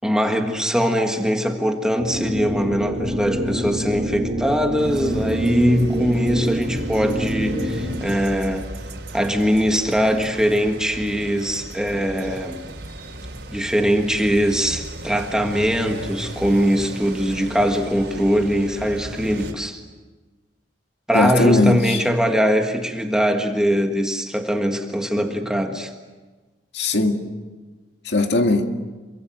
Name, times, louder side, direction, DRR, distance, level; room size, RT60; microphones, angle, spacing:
voice 1, 0.0-8.7 9.1-12.6 13.5-19.8 21.1-25.9, equal, 5° right, 4 dB, 1.6 m, -21 dB
sound 1, 2.0-8.0, right 1 dB, 40° right, 7.5 m, -26 dB
traffic med around city square cuba, 4.8-19.5, right 1 dB, 85° right, 4.1 m, -36 dB
voice 2, 21.1-22.0 26.7-27.2 28.0-28.7, left 2 dB, 75° left, 5 dB, 2.0 m, -19 dB
28.0 x 23.5 x 7.9 m, 1.3 s
head